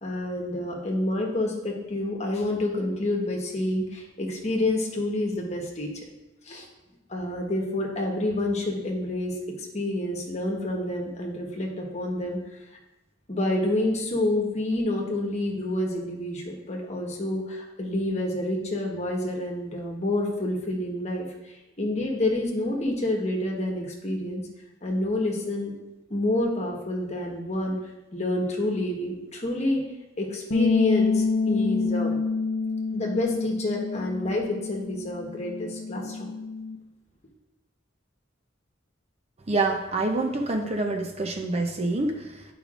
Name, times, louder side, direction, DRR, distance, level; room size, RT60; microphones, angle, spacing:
voice 1, 0.0-5.9 6.4-6.7 7.1-9.3 9.7-12.4 13.3-21.3 21.8-24.4 24.8-25.7 26.1-27.8 28.1-29.8 30.2-32.2 32.9-36.3, left 1 dB, 35° left, 0 dB, 1.2 m, -28 dB
sound 1, 30.5-36.8, left 4 dB, 55° left, 0.7 m, -27 dB
voice 2, 39.5-42.4, right 2 dB, 35° right, 4 dB, 0.6 m, -26 dB
10.0 x 5.1 x 2.5 m, 1.0 s
head